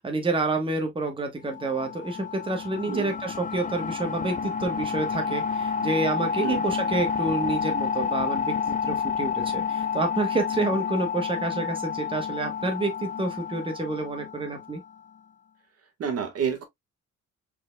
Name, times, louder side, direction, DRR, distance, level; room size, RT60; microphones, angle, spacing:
voice 1, 0.0-14.8, right 2 dB, 15° right, 1.1 m, -29 dB
sound 1, 1.5-14.9, left 6 dB, 30° left, 0.4 m, -30 dB
voice 2, 16.0-16.6, right 6 dB, 55° right, 1.4 m, -29 dB
4.4 x 4.2 x 2.2 m
cardioid pair, 105°, 29 cm